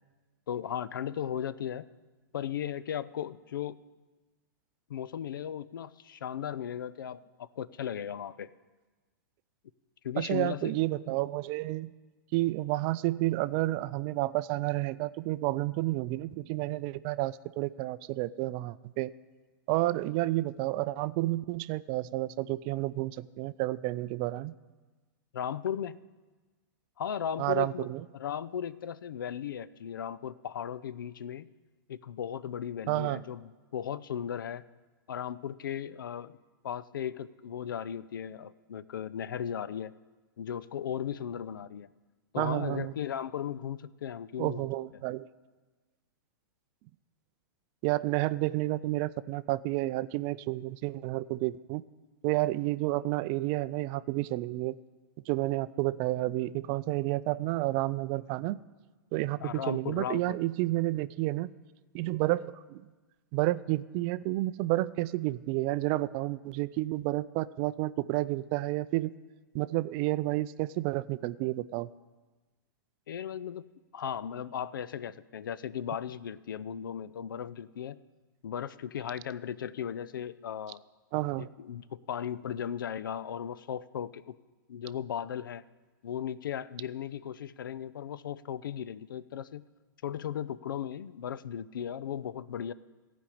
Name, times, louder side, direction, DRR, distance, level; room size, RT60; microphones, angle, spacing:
voice 1, 0.5-1.9 2.3-3.8 4.9-8.5 10.0-10.7 25.3-26.0 27.0-27.9 28.1-31.5 31.9-34.6 35.1-36.4 36.6-39.9 40.4-41.9 42.3-44.7 59.4-60.4 73.1-73.6 73.9-78.0 78.4-80.8 81.4-84.4 84.7-85.6 86.0-89.6 90.0-92.7, left 9 dB, 80° left, 17 dB, 0.4 m, -36 dB
voice 2, 10.2-11.9 12.3-19.1 19.7-24.5 27.4-28.0 32.9-33.2 42.4-42.9 44.4-45.3 47.8-51.8 52.2-54.7 55.3-58.6 59.1-61.5 61.9-62.8 63.3-69.1 69.5-71.9 81.1-81.5, right 18 dB, 40° right, 16 dB, 0.4 m, -30 dB
15.0 x 5.2 x 8.5 m, 1.3 s
hypercardioid pair, 115°, 11 cm